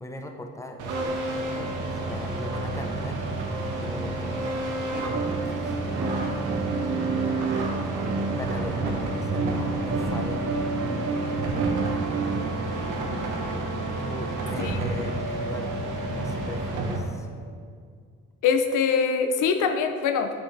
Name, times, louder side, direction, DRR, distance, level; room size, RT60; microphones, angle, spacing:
voice 1, 0.0-3.2 3.5-5.8 6.7-7.3 8.3-10.8 11.5-12.3 14.0-15.8 16.1-17.3, left 1 dB, 10° left, 4 dB, 0.8 m, -39 dB
sound 1, 0.8-17.0, right 2 dB, 85° right, 1.2 m, -30 dB
sound 2, 4.9-12.4, right 4 dB, 50° right, 0.8 m, -31 dB
voice 2, 18.4-20.3, left 6 dB, 85° left, 7 dB, 0.7 m, -23 dB
9.7 x 6.1 x 3.3 m, 2.2 s
cardioid pair, 90°, 30 cm